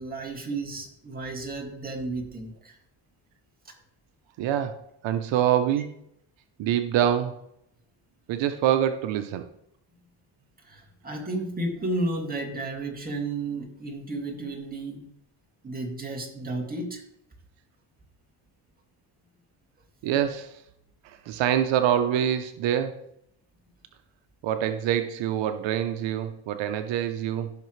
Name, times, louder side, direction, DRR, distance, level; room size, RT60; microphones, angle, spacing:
voice 1, 0.0-2.8 10.6-15.0 15.6-17.0, right 2 dB, 20° right, 1 dB, 2.3 m, -32 dB
voice 2, 4.4-5.9 6.6-7.4 8.3-9.4 20.0-20.5 21.0-23.0 24.4-27.5, right 10 dB, 85° right, 8 dB, 0.9 m, -25 dB
15.0 x 5.9 x 3.2 m, 0.74 s
cardioid pair, 120°, 44 cm